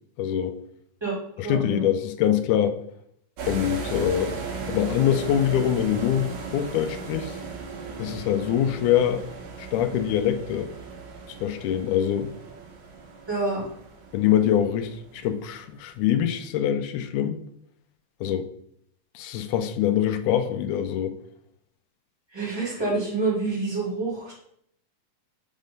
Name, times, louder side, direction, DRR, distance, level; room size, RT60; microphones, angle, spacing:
voice 1, 0.2-0.6 1.4-2.8 3.4-4.3 4.7-7.4 8.0-9.2 9.6-10.7 11.4-12.3 14.1-17.4 18.2-18.5 19.2-21.2, left 10 dB, 80° left, 8 dB, 1.9 m, -24 dB
voice 2, 1.4-1.9 13.3-13.7 22.3-24.3, right 3 dB, 10° right, -5 dB, 1.6 m, -27 dB
sound 1, 3.4-15.5, right 5 dB, 90° right, 2.9 m, -37 dB
6.2 x 3.8 x 5.1 m, 0.70 s
omnidirectional pair, 3.9 m